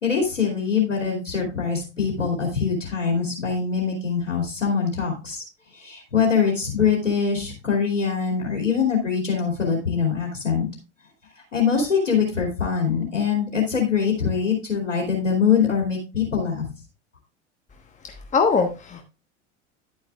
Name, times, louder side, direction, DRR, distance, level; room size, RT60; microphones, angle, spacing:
voice 1, 0.0-5.4 5.7-10.6 11.5-16.7, left 6 dB, 85° left, 0 dB, 2.6 m, -23 dB
voice 2, 18.0-19.0, left 5 dB, 20° left, 5 dB, 1.3 m, -22 dB
11.0 x 9.5 x 2.4 m, 0.28 s
figure-of-eight pair, 80°, 37 cm